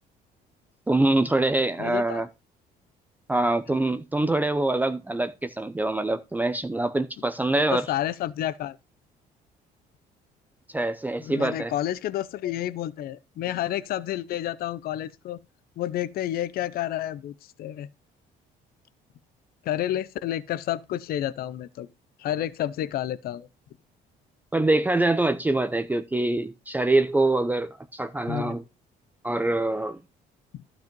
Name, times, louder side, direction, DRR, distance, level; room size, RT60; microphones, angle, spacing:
voice 1, 0.9-2.3 3.3-7.9 10.7-11.7 24.5-28.6 29.2-30.0, right 2 dB, 10° right, 0.6 m, -24 dB
voice 2, 1.8-2.2 7.5-8.8 11.2-15.4 15.8-17.9 19.6-21.9 22.2-23.5 28.3-28.6 30.5-30.6, left 12 dB, 65° left, 0.6 m, -30 dB
12.0 x 5.3 x 5.3 m
cardioid pair, 110°, 17 cm